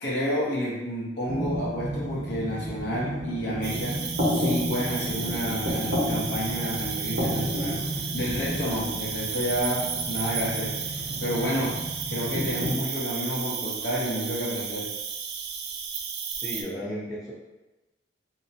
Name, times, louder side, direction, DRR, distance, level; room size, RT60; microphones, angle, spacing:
voice 1, 0.0-4.0 4.3-11.8 12.1-14.9, equal, 60° left, -6 dB, 0.8 m, -30 dB
sound 1, 1.2-12.7, equal, 80° right, 0.9 m, -31 dB
Cricket, 3.6-16.6, right 6 dB, 60° right, 0.3 m, -33 dB
voice 2, 16.4-17.3, equal, 20° left, -8 dB, 0.5 m, -34 dB
2.7 x 2.1 x 2.7 m, 1.0 s
head